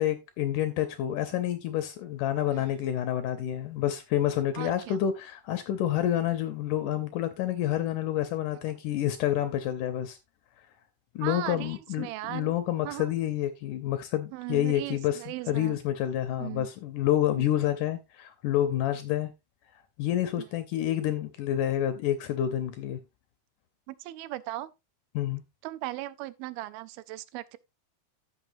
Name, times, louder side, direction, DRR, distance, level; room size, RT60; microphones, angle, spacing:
voice 1, 0.0-10.2 11.2-19.3 20.0-23.0 25.2-25.4, left 12 dB, 75° left, 2.0 m, -28 dB
voice 2, 2.5-2.9 4.5-5.0 6.0-6.1 11.2-12.6 12.8-13.1 14.3-15.8 16.4-16.7 17.4-17.5 20.4-20.5 23.9-24.7 25.6-27.6, right 17 dB, 85° right, 2.5 m, -38 dB
15.5 x 5.6 x 2.6 m
omnidirectional pair, 4.3 m